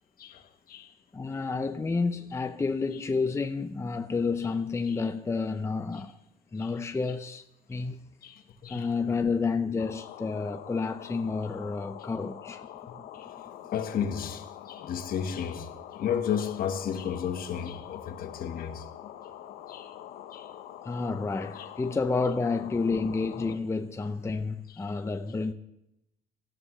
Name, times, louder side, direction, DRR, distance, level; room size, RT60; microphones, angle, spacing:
voice 1, 0.2-0.9 4.8-5.0 5.9-6.0 6.6-6.7 8.2-8.9 13.1-13.3 13.7-18.9 19.7-19.9 20.3-20.5 21.5-21.7, left 8 dB, 60° left, 1.5 m, -33 dB
voice 2, 1.1-6.2 6.5-7.4 7.7-8.0 8.7-12.6 20.8-25.5, left 4 dB, 15° left, 0.7 m, -30 dB
sound 1, 9.8-23.6, left 11 dB, 85° left, 1.0 m, -45 dB
19.0 x 13.5 x 3.3 m
cardioid pair, 110°, 17 cm